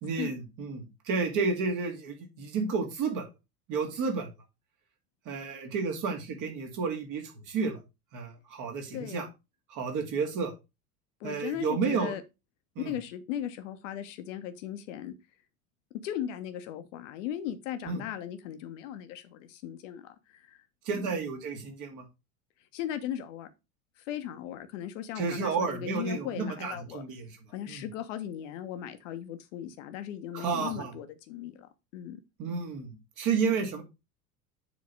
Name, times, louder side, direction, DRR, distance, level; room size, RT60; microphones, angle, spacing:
voice 1, 0.0-3.3 3.7-4.3 5.3-7.8 8.1-9.3 9.7-10.5 11.2-12.1 12.8-12.9 17.8-18.0 20.8-22.0 25.2-27.4 27.7-27.9 30.3-31.0 32.4-33.8, right 5 dB, 40° right, 2.3 m, -31 dB
voice 2, 8.9-9.3 11.2-12.2 12.8-15.1 16.0-20.6 20.9-21.1 22.7-23.5 24.1-27.0 27.5-32.2, left 10 dB, 50° left, 1.1 m, -37 dB
7.4 x 4.0 x 4.7 m
figure-of-eight pair, 75°, 46 cm